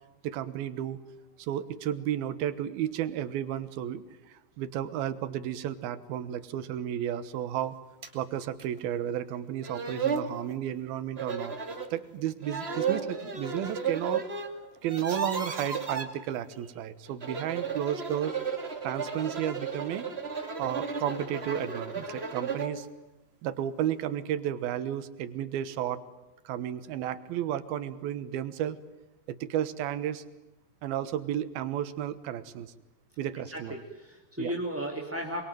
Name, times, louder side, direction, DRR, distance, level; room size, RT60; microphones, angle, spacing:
voice 1, 0.2-1.0 1.4-7.8 8.1-11.6 11.9-14.2 14.8-18.4 18.8-20.1 20.6-22.9 23.4-26.0 26.4-28.8 29.3-30.2 30.8-32.7 33.2-33.8 34.4-34.5, right 11 dB, 90° right, 13 dB, 3.1 m, -33 dB
sound 1, 8.0-8.1 8.6-8.7 9.3-9.4 9.6-10.3 11.2-11.9 12.4-14.5 14.8-16.1 17.1-22.8, right 5 dB, 20° right, 1.9 m, -33 dB
voice 2, 33.5-35.4, equal, 5° right, 0 dB, 1.7 m, -35 dB
25.0 x 23.5 x 9.2 m, 0.99 s
omnidirectional pair, 4.2 m